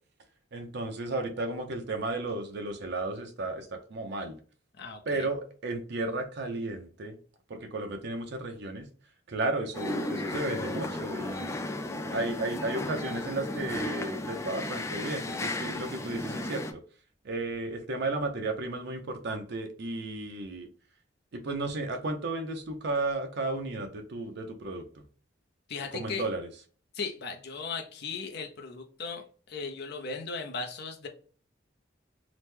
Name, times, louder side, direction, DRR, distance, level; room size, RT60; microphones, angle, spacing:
voice 1, 0.5-4.4 5.1-7.2 7.5-8.9 9.3-11.5 12.1-16.8 17.2-20.7 21.3-24.8 25.9-26.5, right 2 dB, 60° right, 5 dB, 0.6 m, -33 dB
voice 2, 4.8-5.3 25.7-26.3 26.9-31.1, left 4 dB, 60° left, 4 dB, 0.6 m, -37 dB
sound 1, 9.7-16.7, left 1 dB, 15° left, 0.3 m, -34 dB
2.9 x 2.1 x 3.4 m, 0.41 s
head